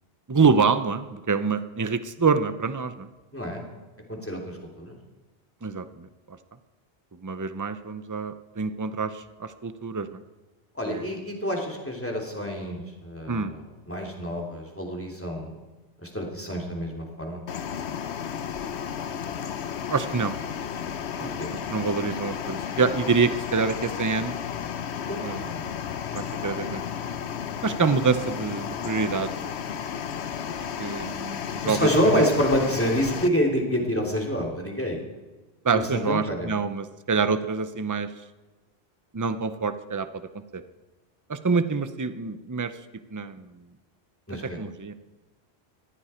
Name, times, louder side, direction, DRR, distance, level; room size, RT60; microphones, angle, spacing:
voice 1, 0.3-3.1 5.6-6.4 7.2-10.2 10.9-11.1 13.3-13.5 19.9-20.3 21.5-24.3 25.2-25.5 26.1-26.8 27.6-29.5 30.5-31.9 32.1-32.3 35.6-38.1 39.1-40.1 40.5-40.6 41.3-42.7 43.1-43.5 44.6-44.9, right 5 dB, 20° right, 11 dB, 0.6 m, -26 dB
voice 2, 3.3-3.7 4.1-5.0 10.7-15.5 16.0-17.4 21.2-21.5 25.1-25.6 31.6-35.0 35.7-36.5 44.3-44.6, equal, 10° left, 1 dB, 3.1 m, -27 dB
sound 1, 17.5-33.3, left 8 dB, 85° left, 1.1 m, -33 dB
20.0 x 15.0 x 4.4 m, 1.2 s
omnidirectional pair, 1.1 m